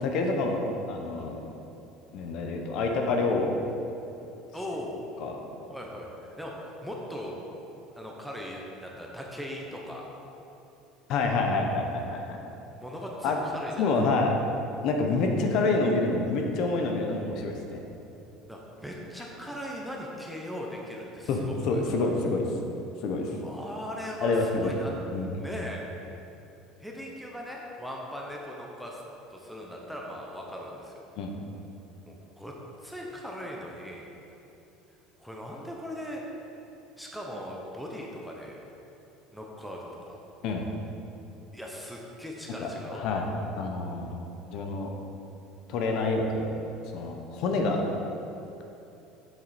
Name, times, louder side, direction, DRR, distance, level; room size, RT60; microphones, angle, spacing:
voice 1, 0.0-1.4 2.1-3.5 5.2-5.4 11.1-12.4 13.2-13.4 13.8-14.3 14.8-17.8 21.3-22.4 23.0-23.3 24.2-24.8 25.1-25.4 31.2-31.3 40.4-40.7 42.6-43.3 43.6-44.2 44.5-44.9 45.7-46.5 46.9-47.8, left 3 dB, 45° left, 2 dB, 0.8 m, -27 dB
voice 2, 4.5-5.1 5.7-6.5 6.8-7.4 7.9-10.0 12.7-13.9 18.5-22.1 23.4-24.9 25.4-25.8 26.8-29.0 29.3-31.0 32.1-32.5 32.8-34.1 35.2-36.2 37.0-38.6 39.3-40.2 41.5-43.1, equal, ahead, -2 dB, 0.7 m, -39 dB
7.7 x 7.4 x 4.2 m, 2.9 s
cardioid pair, 180°, 0 cm